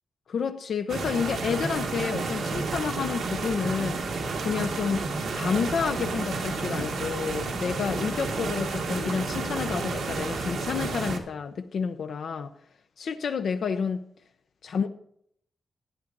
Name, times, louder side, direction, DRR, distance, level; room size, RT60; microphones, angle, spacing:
voice 1, 0.3-4.0 4.4-5.1 5.3-12.5 13.0-14.0 14.6-14.9, left 6 dB, 65° left, 0.6 m, -29 dB
sound 1, 0.9-11.2, right 3 dB, 85° right, 1.6 m, -31 dB
12.5 x 9.4 x 3.9 m
wide cardioid pair, 155°, 0 cm